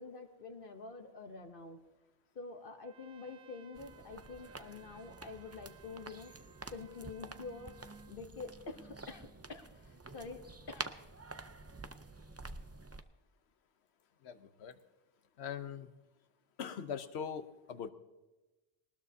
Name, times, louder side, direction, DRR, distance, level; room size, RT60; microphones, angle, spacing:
voice 1, 0.0-1.8 2.3-6.3 6.7-10.9, left 4 dB, 60° left, 6 dB, 1.1 m, -47 dB
Trumpet, 2.8-8.2, right 10 dB, 55° right, 0.7 m, -62 dB
sound 1, 3.7-13.0, right 3 dB, 25° right, 0.4 m, -49 dB
voice 2, 14.2-14.8 15.4-15.9 16.6-17.9, left 7 dB, 80° left, 10 dB, 1.1 m, -41 dB
20.5 x 19.5 x 2.7 m, 1.1 s
omnidirectional pair, 1.1 m